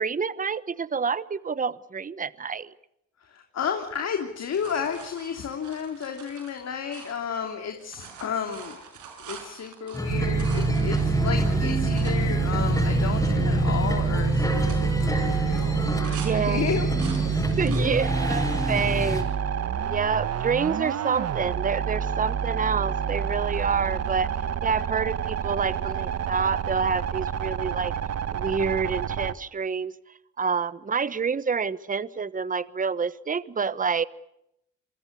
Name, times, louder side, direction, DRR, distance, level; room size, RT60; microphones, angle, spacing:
voice 1, 0.0-2.7 16.1-16.7 17.3-19.3 19.9-24.3 24.6-27.9 28.3-29.9 30.4-34.0, right 5 dB, 25° right, 17 dB, 1.1 m, -28 dB
voice 2, 3.2-16.9, left 7 dB, 60° left, 4 dB, 3.3 m, -32 dB
sound 1, 3.9-7.5 7.8-12.2 12.7-12.8 13.0-13.5 13.8-14.1 14.5-16.3 16.7-17.9 18.4-18.9 19.5-20.3 21.9-22.0, right 7 dB, 85° right, 6.0 m, -45 dB
sound 2, 9.9-19.2, left 1 dB, 10° left, 7.9 m, -27 dB
sound 3, 10.1-29.3, right 8 dB, 55° right, 1.3 m, -28 dB
28.5 x 24.0 x 6.9 m, 0.80 s
cardioid pair, 90°, 30 cm